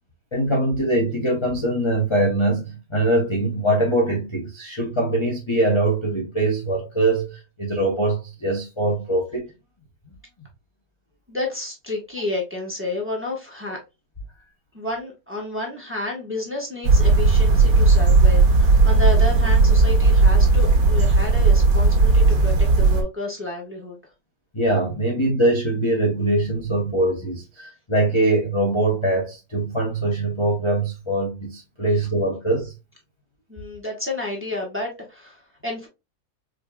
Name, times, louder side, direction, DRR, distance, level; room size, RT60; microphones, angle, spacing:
voice 1, 0.3-9.5 24.5-32.7, right 1 dB, 25° left, 0.7 m, -22 dB
voice 2, 11.3-13.8 14.7-24.0 33.5-35.9, left 2 dB, 10° right, 1.0 m, -30 dB
sound 1, 16.8-23.0, right 3 dB, 75° right, 1.4 m, -16 dB
5.1 x 2.8 x 2.2 m
omnidirectional pair, 1.6 m